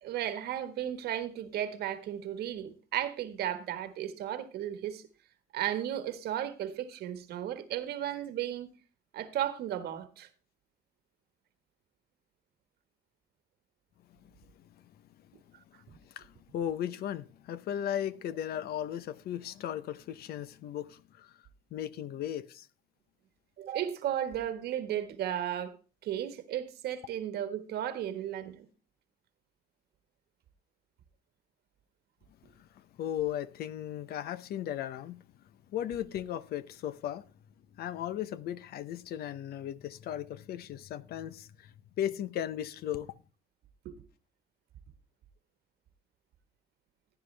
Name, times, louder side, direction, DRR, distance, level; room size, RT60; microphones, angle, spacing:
voice 1, 0.0-5.1 5.5-8.7 9.1-10.3 23.6-25.8 26.0-28.6 43.8-43.9, right 11 dB, 70° right, 1.6 m, -34 dB
voice 2, 14.2-14.7 16.0-21.3 21.7-22.7 32.6-35.2 35.7-37.2 37.8-43.1, left 10 dB, 65° left, 0.8 m, -36 dB
15.5 x 9.9 x 3.4 m
cardioid pair, 110°, 17 cm